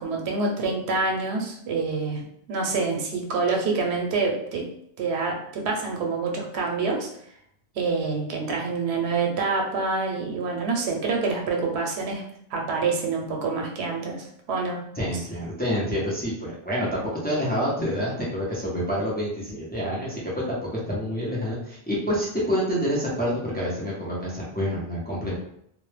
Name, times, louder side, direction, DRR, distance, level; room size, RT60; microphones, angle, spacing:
voice 1, 0.0-4.6 5.0-7.1 7.8-12.2 12.5-14.8 15.1-15.2, right 4 dB, 90° right, 0 dB, 0.9 m, -27 dB
voice 2, 14.9-25.4, equal, 15° left, -6 dB, 0.4 m, -27 dB
2.1 x 2.0 x 3.1 m, 0.70 s
omnidirectional pair, 1.1 m